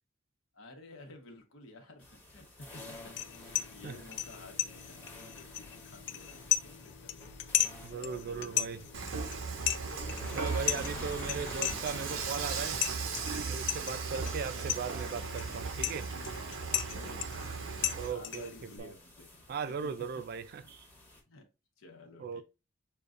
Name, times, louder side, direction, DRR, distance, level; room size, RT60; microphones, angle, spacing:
voice 1, 0.5-8.8 9.8-12.2 12.6-13.0 14.2-14.7 16.9-19.4 20.6-20.7 21.2-21.5 21.8-22.4, left 2 dB, 90° left, 1.1 m, -53 dB
sound 1, 2.0-21.2, left 1 dB, 10° left, 0.9 m, -50 dB
tea stir, 2.7-18.8, left 12 dB, 60° left, 0.4 m, -37 dB
voice 2, 7.8-8.8 10.3-12.8 13.5-16.1 17.9-18.5 18.8-18.9 19.5-20.9 22.2-22.4, right 6 dB, 50° right, 0.3 m, -38 dB
Dishes pots and pans / Frying (food), 8.9-18.1, right 5 dB, 85° right, 0.7 m, -37 dB
6.6 x 2.3 x 2.5 m
head